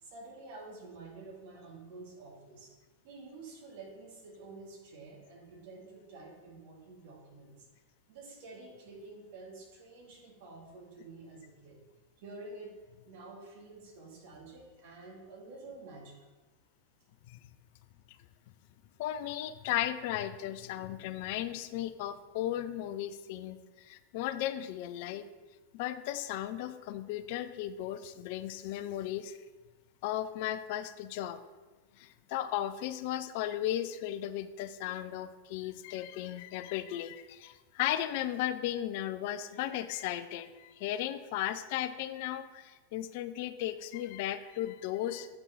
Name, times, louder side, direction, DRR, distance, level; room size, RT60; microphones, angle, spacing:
voice 1, 0.0-2.7 3.0-7.7 8.1-11.8 12.2-12.8 13.0-16.2, right 3 dB, 50° right, -2 dB, 2.0 m, -49 dB
voice 2, 19.0-25.3 25.7-29.4 30.0-31.4 32.0-45.3, left 12 dB, 50° left, 12 dB, 0.4 m, -36 dB
8.0 x 5.4 x 4.1 m, 1.2 s
figure-of-eight pair, 90°, 0 cm